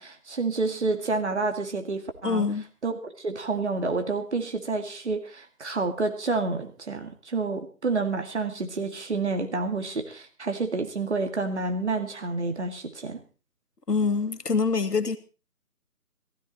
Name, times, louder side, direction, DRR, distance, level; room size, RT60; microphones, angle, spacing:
voice 1, 0.0-2.5 2.8-13.2, right 3 dB, 45° right, 6 dB, 2.3 m, -29 dB
voice 2, 2.2-2.6 13.9-15.2, left 4 dB, 90° left, 10 dB, 2.1 m, -25 dB
16.5 x 15.0 x 4.2 m, 0.35 s
figure-of-eight pair, 165°, 46 cm